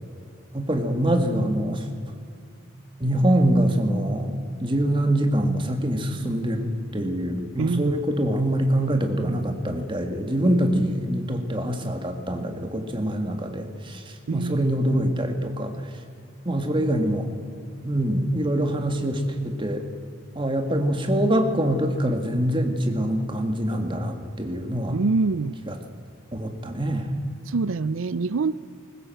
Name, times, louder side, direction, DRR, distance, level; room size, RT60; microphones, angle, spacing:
voice 1, 0.5-1.8 3.0-14.0 14.3-15.7 16.5-17.3 17.8-19.8 20.4-25.0 25.7-25.8 26.3-27.1, right 1 dB, 25° right, 5 dB, 1.9 m, -24 dB
voice 2, 7.6-7.9 10.4-10.8 14.3-14.7 24.9-25.6 27.5-28.6, right 4 dB, 80° right, 18 dB, 0.5 m, -25 dB
21.0 x 19.0 x 7.8 m, 2.3 s
head